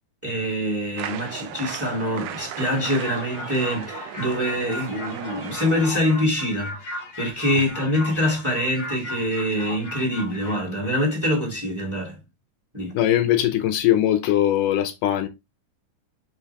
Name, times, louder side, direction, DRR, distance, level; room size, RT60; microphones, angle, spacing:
voice 1, 0.2-12.2 12.7-13.0, equal, 5° right, 2.7 m, -25 dB
sound 1, 1.0-5.9, right 10 dB, 80° right, 2.2 m, -36 dB
sound 2, 2.7-10.6, left 2 dB, 40° left, 2.1 m, -37 dB
voice 2, 12.9-15.3, left 12 dB, 80° left, 2.3 m, -20 dB
5.7 x 5.4 x 3.5 m
omnidirectional pair, 3.8 m